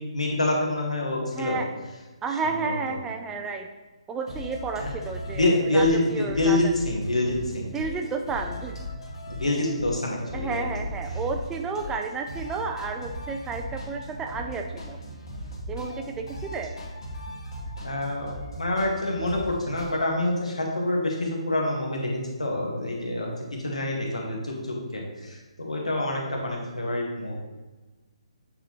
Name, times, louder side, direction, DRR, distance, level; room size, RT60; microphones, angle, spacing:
voice 1, 0.1-1.6 2.6-2.8 4.8-4.9 5.3-7.7 9.3-10.6 17.8-27.4, left 1 dB, 80° left, -1 dB, 1.7 m, -26 dB
voice 2, 1.3-1.7 2.2-3.7 4.1-6.6 7.7-8.8 10.3-15.0 15.7-16.8, right 4 dB, 10° right, 3 dB, 0.4 m, -32 dB
sound 1, 4.3-20.0, equal, 55° left, 1.8 m, -38 dB
8.6 x 4.0 x 3.1 m, 1.2 s
figure-of-eight pair, 140°, 3 cm